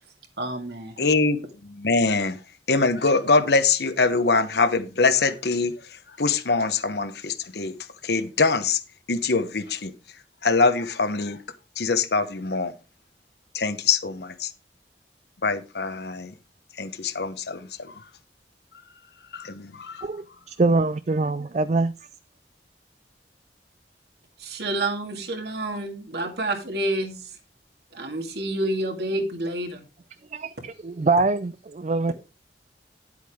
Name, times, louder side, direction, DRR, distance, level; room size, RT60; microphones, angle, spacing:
voice 1, 0.4-0.9 24.4-27.3 27.9-29.8, right 1 dB, 70° right, 2.2 m, -29 dB
voice 2, 1.0-2.4 2.7-7.7 8.0-8.8 9.1-9.9 10.4-11.4 11.8-12.7 13.5-14.5 15.4-16.3 16.8-18.0 19.3-20.1, left 4 dB, 70° left, 1.0 m, -23 dB
voice 3, 20.0-21.9 30.3-30.5 30.8-32.1, right 3 dB, 40° right, 0.4 m, -23 dB
10.5 x 8.2 x 3.6 m
head